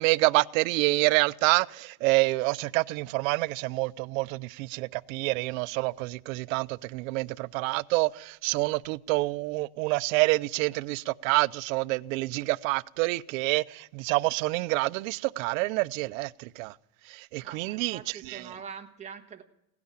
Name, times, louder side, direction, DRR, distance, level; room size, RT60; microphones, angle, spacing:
voice 1, 0.0-16.7 17.1-18.5, right 23 dB, 65° right, 0.6 m, -27 dB
voice 2, 17.4-19.4, right 6 dB, 15° right, 1.3 m, -44 dB
17.0 x 9.6 x 8.8 m
supercardioid pair, 155°, 43 cm